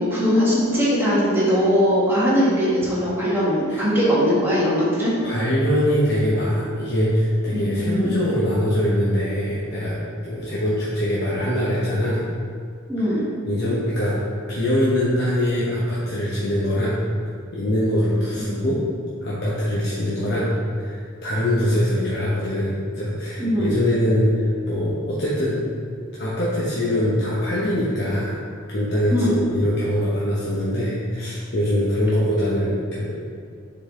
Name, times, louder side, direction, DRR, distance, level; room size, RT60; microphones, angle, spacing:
voice 1, 0.0-5.1 7.5-8.1 12.9-13.2 23.4-23.7 29.1-29.3, equal, 10° right, -8 dB, 1.4 m, -20 dB
voice 2, 5.2-10.0 10.2-12.2 13.0-13.1 13.5-14.2 14.5-17.0 17.5-18.8 19.2-25.6 26.1-28.4 28.7-33.2, equal, 55° left, -8 dB, 0.9 m, -23 dB
6.4 x 4.0 x 3.7 m, 2.2 s
head